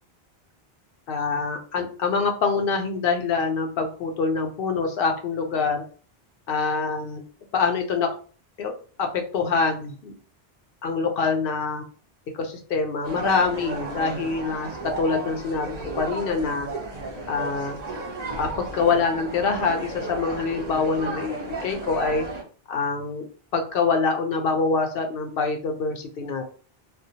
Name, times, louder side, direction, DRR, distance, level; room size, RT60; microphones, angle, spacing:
voice 1, 1.1-5.8 6.5-7.2 7.5-8.1 8.6-8.7 9.0-10.1 10.8-11.8 12.3-14.7 15.0-16.7 17.3-17.8 18.4-22.3 22.7-26.4, left 4 dB, 65° left, 4 dB, 0.7 m, -25 dB
sound 1, 13.0-22.4, right 2 dB, 45° right, 0.7 m, -34 dB
2.2 x 2.2 x 2.7 m, 0.40 s
omnidirectional pair, 1.0 m